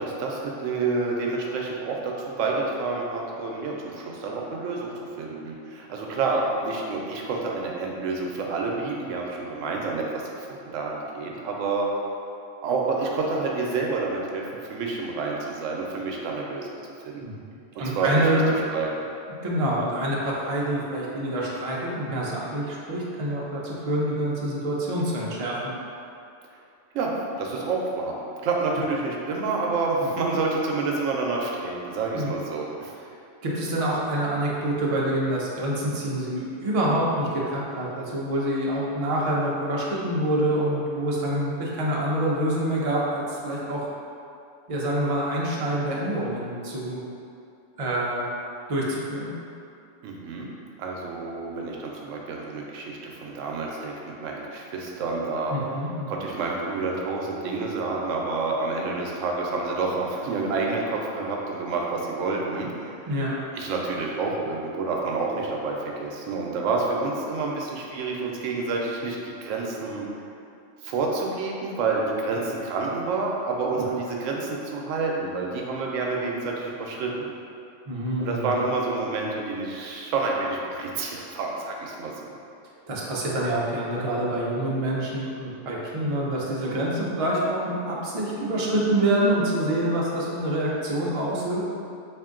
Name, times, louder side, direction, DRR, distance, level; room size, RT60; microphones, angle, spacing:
voice 1, 0.0-10.1 10.3-11.9 12.6-16.7 17.1-17.2 17.7-19.1 26.9-28.2 28.4-32.9 50.0-50.5 50.8-55.5 56.1-63.1 63.5-70.1 70.8-77.3 78.2-82.4, right 3 dB, 80° right, -1 dB, 0.9 m, -28 dB
voice 2, 17.8-18.6 19.3-25.6 32.1-32.3 33.4-43.8 44.7-47.0 47.8-48.3 48.7-49.3 55.5-56.1 63.1-63.4 77.9-78.5 82.9-91.6, right 1 dB, 45° right, -5 dB, 0.5 m, -26 dB
3.6 x 2.5 x 3.6 m, 2.6 s
omnidirectional pair, 1.3 m